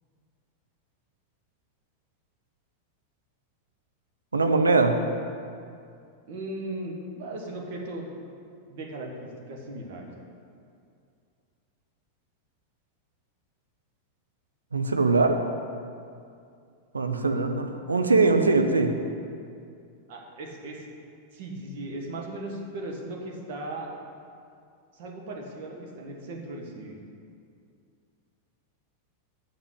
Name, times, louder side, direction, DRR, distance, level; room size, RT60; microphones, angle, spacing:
voice 1, 4.3-5.0 14.7-15.4 16.9-18.9, right 3 dB, 75° right, 5 dB, 0.7 m, -22 dB
voice 2, 6.3-8.1 8.7-10.1 17.1-17.4 18.2-18.5 20.1-20.8 21.3-23.9 24.9-27.0, right 1 dB, 50° right, 0 dB, 1.7 m, -37 dB
7.5 x 6.7 x 8.2 m, 2.4 s
figure-of-eight pair, 90°, 0 cm